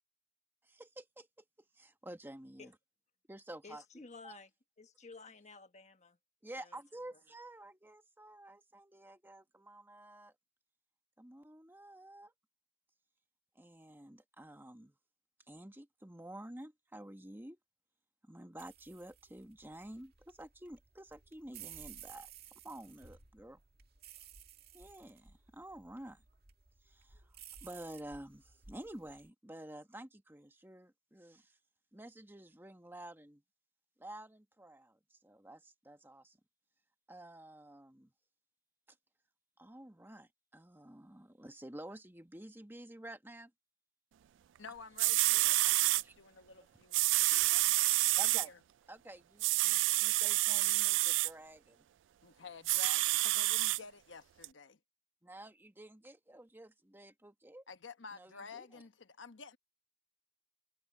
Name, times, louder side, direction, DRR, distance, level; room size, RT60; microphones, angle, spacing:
voice 1, 0.6-1.3 1.7-2.7 3.3-4.4 6.4-10.3 11.2-12.3 13.5-14.9 15.5-17.6 18.2-22.3 22.6-23.6 24.7-26.2 26.8-31.6 31.9-33.4 34.0-36.4 37.1-38.1 39.6-43.5 46.0-46.1 46.6-46.7 48.2-48.5 48.9-51.9 55.2-57.6 58.1-58.8, right 1 dB, 10° right, 1.4 m, -51 dB
voice 2, 3.6-4.5 4.8-6.2 6.6-6.8, left 4 dB, 40° left, 1.4 m, -53 dB
sound 1, 18.6-29.3, right 9 dB, 55° right, 2.3 m, -56 dB
voice 3, 44.6-48.6 52.2-54.8 57.7-59.6, left 5 dB, 70° left, 1.1 m, -51 dB
sound 2, 44.7-44.8 45.0-46.0 46.9-48.5 49.4-51.3 52.6-53.8 54.4-54.5, right 20 dB, 75° right, 0.3 m, -28 dB
head